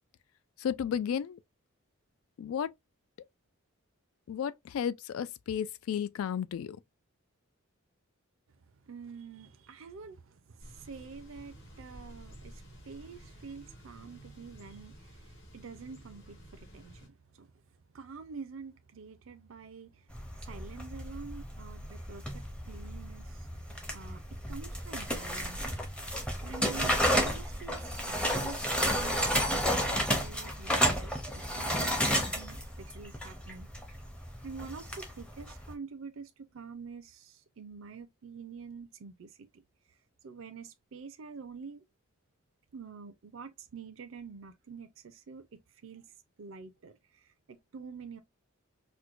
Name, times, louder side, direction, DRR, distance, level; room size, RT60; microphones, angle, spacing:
voice 1, 0.6-1.4 2.4-2.7 4.3-6.8, left 8 dB, 75° left, 0.3 m, -33 dB
voice 2, 8.9-15.2 15.5-17.5 17.9-19.9 20.5-23.5 23.9-24.2 24.5-25.6 26.4-33.7 34.4-39.6 40.2-41.8 42.7-46.0 46.4-46.9 47.5-48.2, right 5 dB, 65° right, 0.5 m, -47 dB
Thunder / Bicycle, 10.6-17.1, equal, 60° left, 1.6 m, -52 dB
sound 1, 20.1-35.7, equal, 5° left, 0.6 m, -32 dB
4.4 x 2.1 x 2.4 m
head